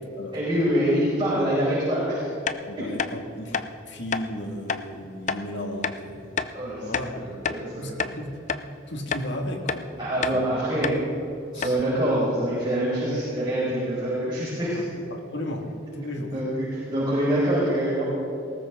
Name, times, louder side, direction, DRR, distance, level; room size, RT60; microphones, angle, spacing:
voice 1, 0.3-2.3 6.5-8.0 10.0-10.9 11.5-14.8 16.3-18.0, right 1 dB, 25° right, -8 dB, 5.1 m, -25 dB
sound 1, 2.5-2.6 3.0-3.1 3.5-3.7 4.1-4.3 4.7-4.8 5.3-5.4 5.8-6.0 6.4-6.5 6.9-7.7 8.0-8.2 8.5-8.6 9.1-9.3 9.7-9.8 10.2-10.4 10.8-11.0 11.3-11.4 11.6-11.8, left 6 dB, 40° left, 0.5 m, -28 dB
voice 2, 2.7-3.6 3.9-6.3 6.8-7.2 7.8-8.3 8.9-9.9 10.3-10.6 11.5-11.7 15.1-15.7 15.9-16.3 17.1-17.2, left 1 dB, 60° left, 2 dB, 2.1 m, -34 dB
20.5 x 18.0 x 3.8 m, 2.7 s
head